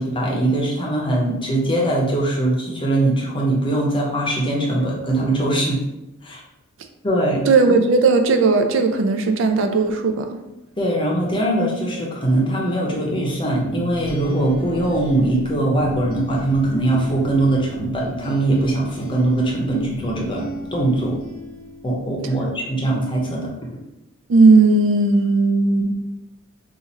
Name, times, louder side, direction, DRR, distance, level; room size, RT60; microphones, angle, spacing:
voice 1, 0.0-5.8 6.2-6.4 7.0-7.4 10.8-20.5 20.7-21.2 21.8-23.5, right 1 dB, 20° left, -2 dB, 0.7 m, -21 dB
voice 2, 7.5-10.4 24.3-25.9, right 3 dB, 60° right, 5 dB, 0.3 m, -16 dB
sound 1, 13.6-22.3, right 1 dB, 85° left, 0.8 m, -34 dB
4.2 x 2.5 x 2.8 m, 0.95 s
head